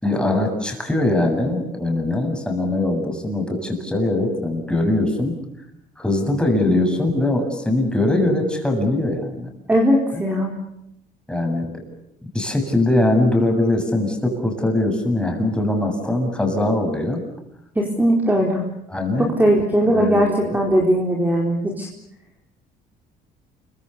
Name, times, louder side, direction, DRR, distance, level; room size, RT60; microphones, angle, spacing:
voice 1, 0.0-5.3 6.0-9.5 11.3-11.7 12.3-17.2 18.9-19.3 19.8-20.7, left 2 dB, 5° left, 2 dB, 7.7 m, -21 dB
voice 2, 9.7-10.5 17.8-18.6 19.2-21.9, equal, 10° right, 0 dB, 4.2 m, -19 dB
29.5 x 24.5 x 7.1 m, 0.80 s
cardioid pair, 110°, 17 cm